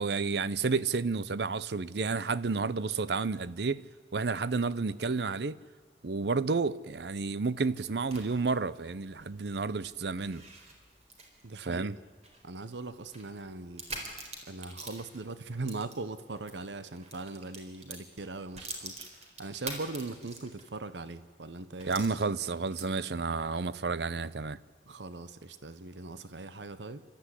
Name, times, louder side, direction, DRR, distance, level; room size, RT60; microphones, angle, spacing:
voice 1, 0.0-3.8 4.1-5.6 6.0-10.4 11.6-11.9 21.9-24.6, right 4 dB, 70° right, 0.7 m, -31 dB
sound 1, 7.5-16.6 16.9-20.8 21.1-21.2 21.8-23.1, right 2 dB, 40° right, 4.2 m, -46 dB
voice 2, 11.4-11.9 12.4-13.8 14.5-22.1 24.9-27.0, right 3 dB, 85° right, 1.0 m, -40 dB
29.0 x 13.0 x 9.9 m
head